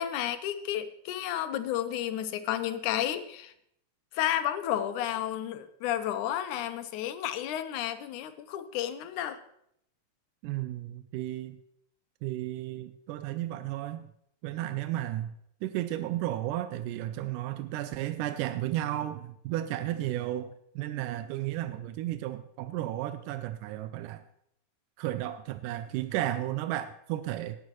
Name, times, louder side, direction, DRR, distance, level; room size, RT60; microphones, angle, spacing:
voice 1, 0.0-3.5 4.1-9.4, left 11 dB, 75° left, 10 dB, 2.1 m, -32 dB
voice 2, 10.4-11.6 12.2-14.1 14.4-15.3 15.6-20.5 20.8-24.2 25.0-27.6, right 14 dB, 90° right, 11 dB, 2.1 m, -33 dB
17.5 x 9.3 x 3.1 m, 0.73 s
omnidirectional pair, 3.6 m